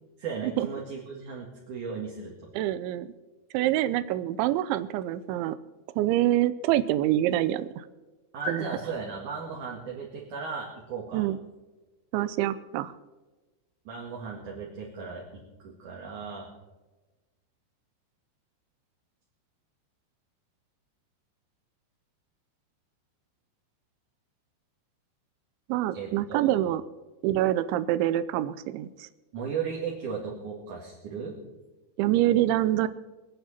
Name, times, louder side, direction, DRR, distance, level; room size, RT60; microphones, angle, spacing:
voice 1, 0.2-2.3 8.3-11.2 13.8-16.5 25.9-26.6 29.3-31.4, right 5 dB, 50° right, -3 dB, 2.8 m, -36 dB
voice 2, 2.6-3.1 3.5-5.6 6.0-7.8 8.5-8.6 11.1-11.4 12.1-12.9 25.7-26.8 27.2-29.1 32.0-32.9, right 13 dB, 80° right, 13 dB, 2.8 m, -26 dB
24.5 x 9.1 x 4.3 m, 1.2 s
omnidirectional pair, 5.6 m